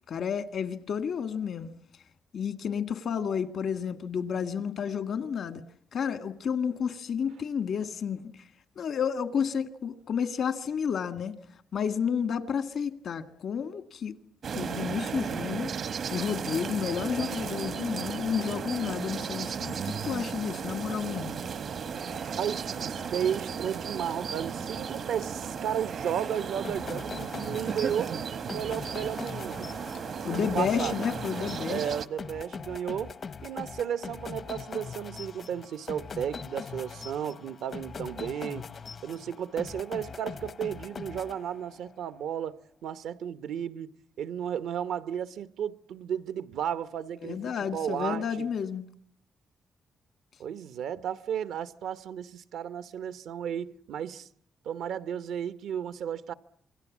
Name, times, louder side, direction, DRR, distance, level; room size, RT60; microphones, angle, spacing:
voice 1, 0.1-1.7 2.3-5.6 5.9-8.3 8.7-11.4 11.7-14.1 14.5-15.7 16.1-21.4 30.2-31.8 47.2-48.9, left 7 dB, 70° left, 1.7 m, -31 dB
sound 1, 14.4-32.1, right 6 dB, 65° right, 1.0 m, -35 dB
Water tap faucet / Sink (filling or washing), 16.9-31.1, left 4 dB, 85° left, 7.4 m, -53 dB
voice 2, 22.3-28.1 28.5-29.7 30.3-30.9 31.7-33.1 33.4-38.6 39.0-43.9 44.2-48.5 50.4-54.3 54.6-56.3, right 9 dB, 85° right, 1.0 m, -33 dB
sound 2, 26.6-41.9, left 5 dB, 55° left, 1.0 m, -41 dB
27.5 x 22.5 x 7.3 m
cardioid pair, 75°, 0 cm